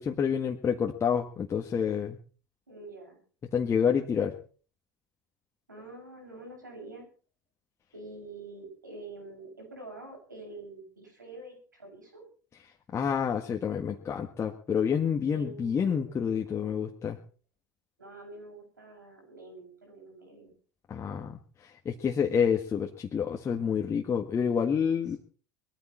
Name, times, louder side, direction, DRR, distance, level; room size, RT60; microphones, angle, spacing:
voice 1, 0.0-2.2 3.5-4.3 12.9-17.2 20.9-25.2, left 7 dB, 30° left, 2 dB, 1.7 m, -28 dB
voice 2, 2.7-3.2 5.7-7.1 7.9-12.2 15.3-16.8 18.0-20.5, right 2 dB, 90° right, 1 dB, 7.3 m, -46 dB
21.0 x 14.0 x 4.3 m, 0.41 s
figure-of-eight pair, 75°, 10 cm